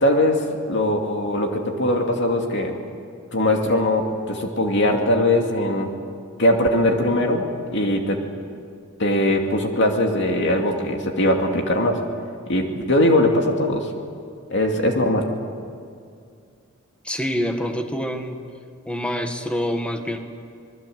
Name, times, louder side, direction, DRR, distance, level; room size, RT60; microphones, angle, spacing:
voice 1, 0.0-2.8 3.3-5.9 6.4-8.2 9.0-12.0 12.5-13.9 14.5-15.3, left 1 dB, 60° left, 2 dB, 2.4 m, -20 dB
voice 2, 17.0-18.4 18.9-20.2, equal, 5° left, 5 dB, 1.7 m, -26 dB
26.5 x 21.0 x 7.9 m, 2.3 s
head